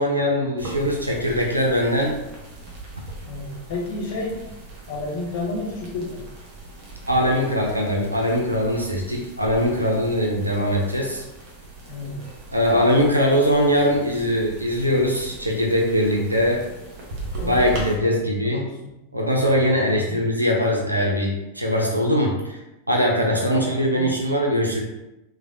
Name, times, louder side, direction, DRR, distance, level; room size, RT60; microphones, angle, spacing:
voice 1, 0.0-2.2 7.1-11.2 12.5-16.6 17.4-18.7 19.1-22.6 22.9-24.8, equal, 90° right, -1 dB, 0.4 m, -21 dB
sound 1, 0.6-17.9, right 2 dB, 40° right, 0.9 m, -39 dB
voice 2, 3.3-4.4 4.9-6.2 11.9-12.3 17.4-19.1 19.9-20.2 23.3-24.1, left 2 dB, 55° left, -3 dB, 0.8 m, -32 dB
3.2 x 2.1 x 2.5 m, 0.96 s
figure-of-eight pair, 90°, 0 cm